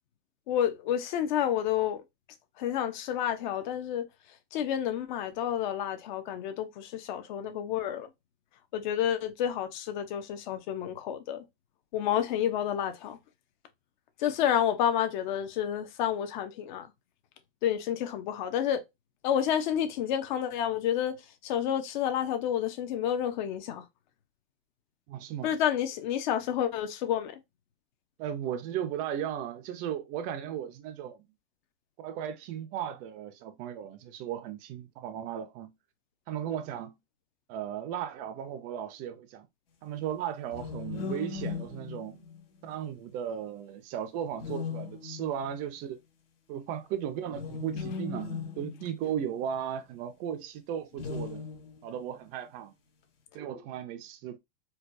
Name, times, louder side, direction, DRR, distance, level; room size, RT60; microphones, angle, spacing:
voice 1, 0.5-2.0 2.6-4.0 4.5-8.1 8.7-11.4 11.9-13.2 14.2-16.9 17.6-18.8 19.2-21.2 21.4-23.8 25.4-27.4, left 10 dB, 50° left, 0.8 m, -29 dB
voice 2, 25.1-25.6 28.2-31.2 32.0-35.7 36.3-37.0 37.5-39.5 39.8-42.2 42.6-46.0 46.5-51.4 51.8-52.7 53.3-54.4, right 9 dB, 25° right, 0.4 m, -36 dB
sound 1, 40.5-42.8 44.3-45.5 47.2-49.5 50.9-52.0, left 5 dB, 75° left, 1.8 m, -38 dB
4.4 x 2.3 x 2.5 m
supercardioid pair, 155°, 30 cm